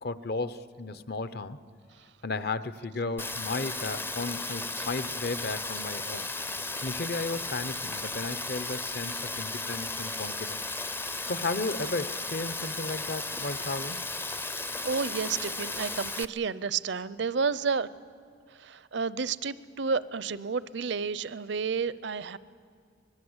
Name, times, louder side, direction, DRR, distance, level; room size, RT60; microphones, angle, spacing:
voice 1, 0.0-1.6 2.2-6.3 6.8-10.6 11.3-14.0, left 3 dB, 55° left, 13 dB, 0.8 m, -34 dB
Rain, 3.2-16.3, left 3 dB, 10° left, 0.5 m, -35 dB
voice 2, 14.8-17.9 18.5-22.4, right 5 dB, 65° right, 17 dB, 0.6 m, -31 dB
24.5 x 20.5 x 8.0 m, 2.2 s
head